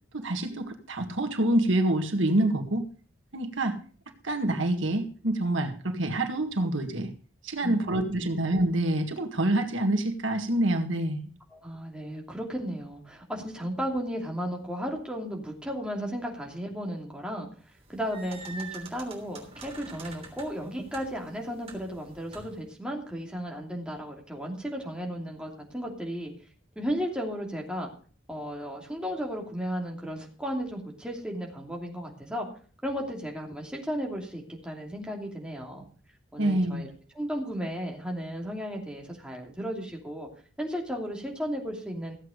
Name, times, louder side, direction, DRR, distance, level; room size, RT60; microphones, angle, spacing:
voice 1, 0.1-2.8 3.3-3.8 4.2-7.1 7.4-11.3 36.4-36.8, right 1 dB, 85° right, 6 dB, 1.9 m, -26 dB
voice 2, 7.6-8.3 11.5-17.5 17.9-26.3 26.8-27.9 28.3-32.5 32.8-35.9 36.3-36.9 37.1-40.3 40.6-42.2, equal, 5° right, 0 dB, 2.7 m, -34 dB
sound 1, 17.7-22.7, right 4 dB, 30° right, 3.3 m, -46 dB
15.5 x 8.2 x 5.1 m, 0.41 s
head